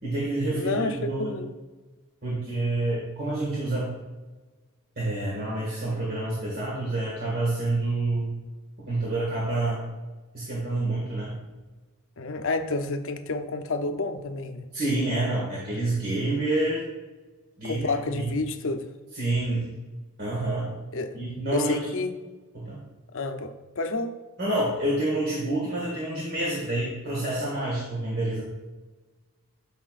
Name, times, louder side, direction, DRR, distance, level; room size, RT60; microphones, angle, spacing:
voice 1, 0.0-1.4 2.2-3.9 5.0-8.3 8.8-9.8 10.3-11.4 14.7-16.9 17.6-18.3 19.1-19.7 20.2-20.7 21.1-21.8 22.5-22.8 24.4-28.4, right 2 dB, 45° right, -5 dB, 1.9 m, -28 dB
voice 2, 0.5-1.5 12.2-14.7 17.6-18.9 20.9-21.2 21.5-22.1 23.1-24.2, left 3 dB, 60° left, 7 dB, 0.7 m, -30 dB
12.5 x 5.8 x 2.5 m, 1.3 s
head